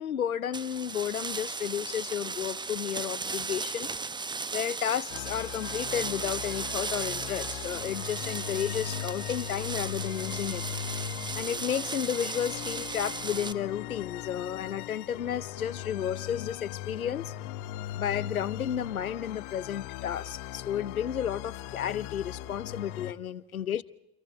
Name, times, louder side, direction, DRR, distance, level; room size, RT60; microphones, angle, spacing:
voice 1, 0.0-3.9 4.5-10.6 11.3-17.3 17.9-23.8, left 9 dB, 85° left, 0.8 m, -32 dB
sound 1, 0.5-13.5, right 4 dB, 10° right, 0.8 m, -36 dB
sound 2, 5.1-23.1, left 12 dB, 55° left, 0.9 m, -39 dB
29.0 x 26.5 x 4.2 m
figure-of-eight pair, 70°, 42 cm